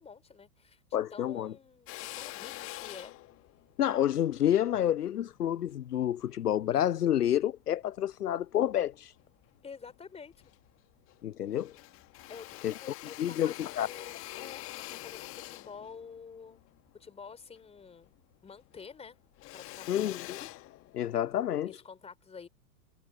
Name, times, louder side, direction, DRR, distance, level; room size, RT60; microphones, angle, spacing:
voice 1, 0.0-0.8 1.1-3.1 9.6-10.3 12.3-16.6 16.9-18.1 18.4-19.2 19.5-20.2 21.8-22.5, left 5 dB, 15° left, 4.0 m, -49 dB
voice 2, 0.9-1.5 3.8-9.1 11.2-11.7 12.6-12.7 13.2-13.9 19.9-20.5 20.9-21.7, left 11 dB, 80° left, 0.5 m, -29 dB
Drill, 1.9-6.4 7.0-8.1 8.6-9.5 9.9-10.0 10.3-11.3 11.5-18.2 18.5-21.3, left 18 dB, 30° left, 1.7 m, -46 dB
figure-of-eight pair, 100°, 46 cm